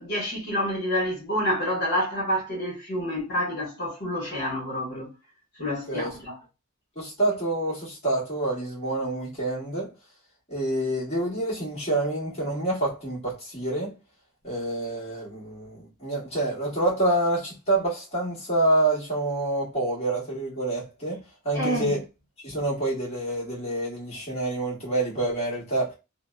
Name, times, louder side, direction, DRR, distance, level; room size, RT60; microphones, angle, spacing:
voice 1, 0.0-5.1 5.6-6.4 21.5-22.0, equal, 50° left, 1.1 m, -28 dB
voice 2, 6.9-9.9 10.5-14.0 14.4-22.0 22.4-26.0, right 2 dB, 30° left, 1.2 m, -27 dB
2.7 x 2.0 x 2.2 m
head